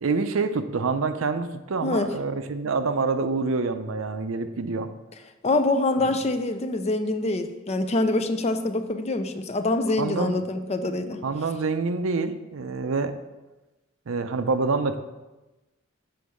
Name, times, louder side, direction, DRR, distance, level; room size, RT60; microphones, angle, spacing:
voice 1, 0.0-4.9 6.0-6.1 10.0-10.3 11.2-13.1 14.1-15.0, right 4 dB, 70° right, 9 dB, 0.6 m, -26 dB
voice 2, 5.4-11.2, left 2 dB, 30° left, 9 dB, 0.5 m, -25 dB
7.0 x 4.6 x 6.2 m, 1.1 s
head